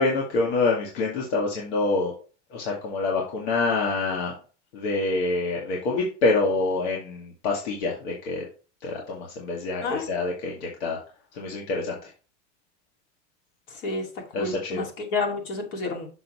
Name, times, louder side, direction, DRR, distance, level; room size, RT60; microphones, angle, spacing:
voice 1, 0.0-2.1 2.5-4.3 4.7-8.4 8.8-9.8 10.1-11.0 11.4-12.0 14.3-14.8, left 3 dB, 80° left, -2 dB, 2.2 m, -26 dB
voice 2, 13.7-14.1 14.4-16.1, left 3 dB, 50° left, 2 dB, 2.4 m, -29 dB
6.7 x 6.4 x 3.1 m, 0.36 s
supercardioid pair, 155°, 34 cm